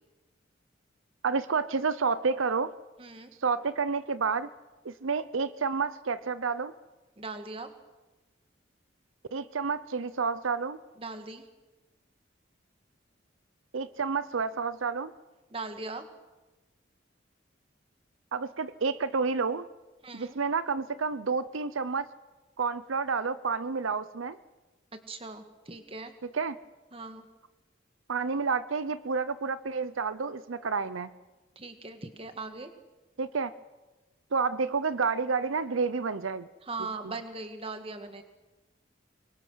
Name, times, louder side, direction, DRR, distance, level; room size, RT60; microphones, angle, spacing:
voice 1, 1.2-2.7 3.4-4.5 4.8-6.7 9.3-10.8 13.7-15.1 18.3-19.7 20.1-22.1 22.6-24.4 26.3-26.6 28.1-31.1 33.2-33.5 34.3-36.5, right 5 dB, 90° right, 15 dB, 0.7 m, -29 dB
voice 2, 3.0-3.3 7.2-7.7 11.0-11.5 15.5-16.1 20.0-20.4 25.1-26.1 26.9-27.3 31.6-32.7 36.6-38.2, right 3 dB, 30° right, 7 dB, 1.8 m, -39 dB
25.0 x 23.0 x 6.3 m, 1.1 s
head